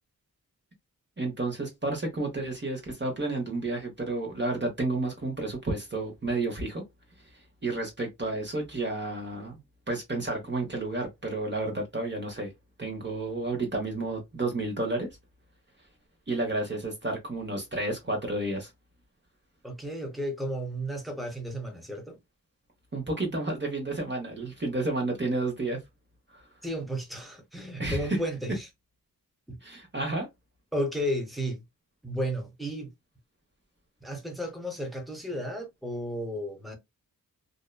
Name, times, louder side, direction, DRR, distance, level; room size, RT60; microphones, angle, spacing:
voice 1, 1.2-6.8 7.2-9.5 9.9-12.5 12.8-15.1 15.8-15.9 16.3-18.7 22.9-25.8 26.3-26.5 27.8-28.2 29.6-30.3, right 2 dB, 30° right, 1.0 m, -31 dB
voice 2, 19.6-22.2 26.6-28.7 29.5-29.6 30.7-31.6 32.0-32.9 34.0-36.8, equal, ahead, 1.0 m, -33 dB
2.7 x 2.1 x 2.2 m
cardioid pair, 60°, 36 cm